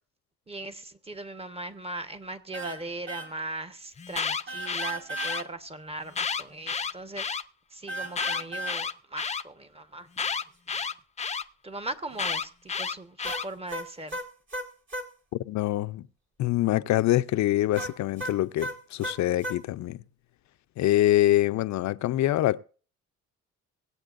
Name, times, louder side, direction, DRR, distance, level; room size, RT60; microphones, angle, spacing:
voice 1, 0.5-7.2 7.7-10.1 11.6-14.2, right 2 dB, 20° right, 1.2 m, -39 dB
sound 1, 2.5-2.8 3.1-3.3 4.5-5.4 7.9-8.8 13.2-15.1 17.7-19.6, right 1 dB, 40° right, 2.3 m, -35 dB
Alarm, 4.0-5.4 6.1-7.4 8.1-9.4 10.2-11.4 12.2-13.5, left 5 dB, 20° left, 0.6 m, -31 dB
voice 2, 15.3-16.0 16.4-20.0 20.8-22.6, left 15 dB, 70° left, 0.5 m, -25 dB
24.0 x 8.4 x 2.5 m
cardioid pair, 90°, 30 cm